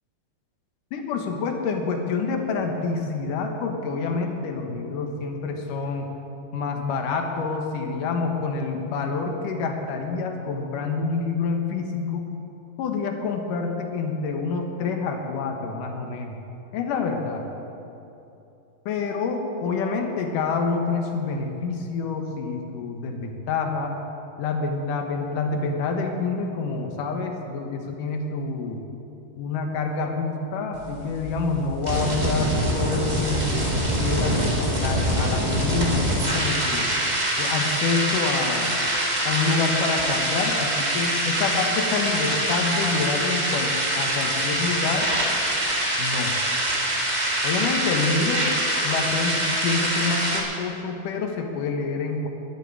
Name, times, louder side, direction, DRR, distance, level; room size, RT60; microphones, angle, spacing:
voice 1, 0.9-6.1 6.5-12.3 12.8-16.4 16.7-17.4 18.9-24.0 24.4-28.8 29.4-36.9 37.4-38.7 39.3-45.1 46.0-46.3 47.4-48.5 48.8-52.3, left 4 dB, 65° left, 3 dB, 2.6 m, -27 dB
sound 1, 30.7-50.4, right 1 dB, 20° right, 1.0 m, -24 dB
11.5 x 10.5 x 9.7 m, 2.9 s
omnidirectional pair, 4.6 m